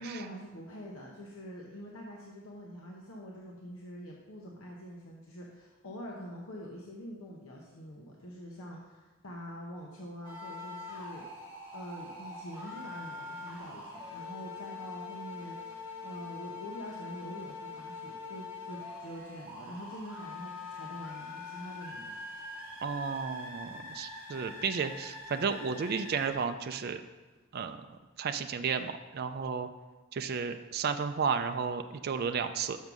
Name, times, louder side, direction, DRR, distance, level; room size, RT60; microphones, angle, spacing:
voice 1, 0.0-11.2 11.7-22.2, equal, 80° left, -2 dB, 1.0 m, -45 dB
sound 1, 10.2-26.3, left 3 dB, 10° right, 2.1 m, -44 dB
voice 2, 22.8-27.0 27.5-27.8 28.2-29.7 30.1-32.8, right 6 dB, 45° right, 8 dB, 0.4 m, -33 dB
6.4 x 5.3 x 6.0 m, 1.2 s
head